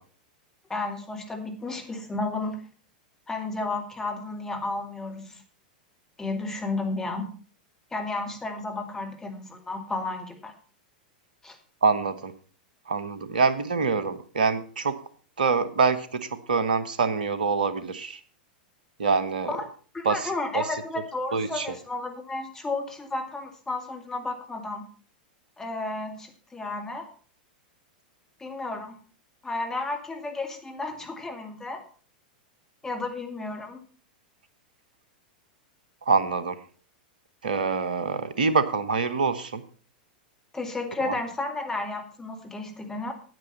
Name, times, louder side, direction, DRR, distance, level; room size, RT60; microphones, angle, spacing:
voice 1, 0.7-2.6 3.3-5.4 6.2-7.3 7.9-10.5 11.4-11.6 19.5-19.7 19.9-24.8 25.6-27.1 28.4-28.9 29.4-31.8 32.8-33.8 40.5-43.1, left 2 dB, 10° left, 3 dB, 2.1 m, -32 dB
voice 2, 11.8-12.3 12.9-15.0 15.4-18.2 19.0-19.5 20.0-20.6 21.3-21.8 36.1-36.6 37.4-39.6 41.0-41.1, right 4 dB, 70° right, 14 dB, 1.1 m, -25 dB
9.4 x 8.8 x 5.6 m, 0.41 s
figure-of-eight pair, 95°, 5 cm